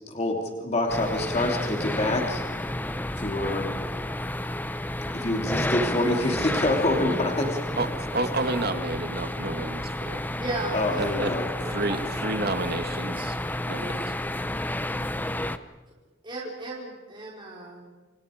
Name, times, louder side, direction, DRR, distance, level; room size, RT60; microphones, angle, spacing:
voice 1, 0.1-2.4 3.2-3.7 5.1-7.6 10.3-10.4 10.7-11.5, left 1 dB, 35° left, 2 dB, 2.8 m, -26 dB
sound 1, 0.9-15.6, left 1 dB, 10° left, 0.7 m, -31 dB
voice 2, 7.8-10.2 11.0-11.3 11.7-13.4 13.7-14.1, right 2 dB, 50° right, 8 dB, 1.9 m, -30 dB
voice 3, 10.4-12.0 16.2-17.9, right 2 dB, 25° right, -4 dB, 4.5 m, -36 dB
29.0 x 26.5 x 5.0 m, 1.3 s
head